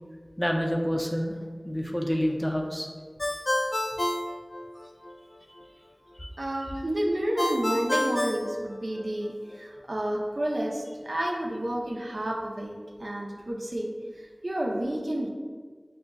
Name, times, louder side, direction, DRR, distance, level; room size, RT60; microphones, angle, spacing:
voice 1, 0.4-1.4 1.6-2.9 6.2-6.3, equal, 10° left, 1 dB, 0.4 m, -28 dB
Ringtone, 3.2-5.1 7.4-9.3, left 1 dB, 80° left, 0.3 m, -29 dB
voice 2, 6.4-13.9 14.2-15.3, right 1 dB, 80° right, -1 dB, 0.5 m, -30 dB
6.0 x 2.4 x 2.3 m, 1.5 s
wide cardioid pair, 45°, 0 cm